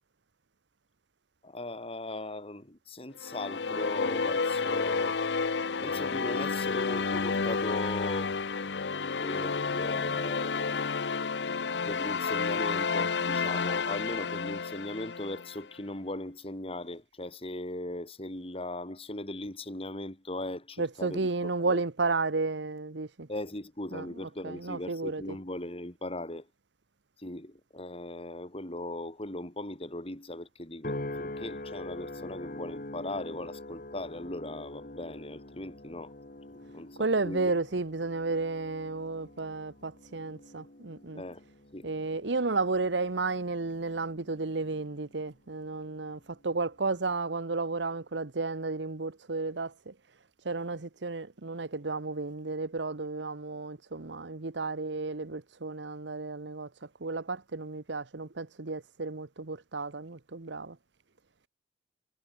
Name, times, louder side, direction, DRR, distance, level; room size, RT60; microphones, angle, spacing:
voice 1, 1.4-5.2 5.8-8.3 9.1-10.8 11.8-21.3 21.7-21.8 23.3-26.5 27.2-36.1 36.6-37.5 41.1-41.4 41.7-41.9, left 1 dB, 30° left, 3.5 m, -39 dB
sound 1, 3.2-15.6, left 4 dB, 70° left, 0.8 m, -30 dB
voice 2, 20.8-23.3 23.9-25.4 37.0-41.2 41.8-49.9 50.4-60.8, right 3 dB, 75° right, 1.1 m, -33 dB
sound 2, 30.8-45.3 45.8-46.3, left 1 dB, 50° left, 2.3 m, -44 dB
head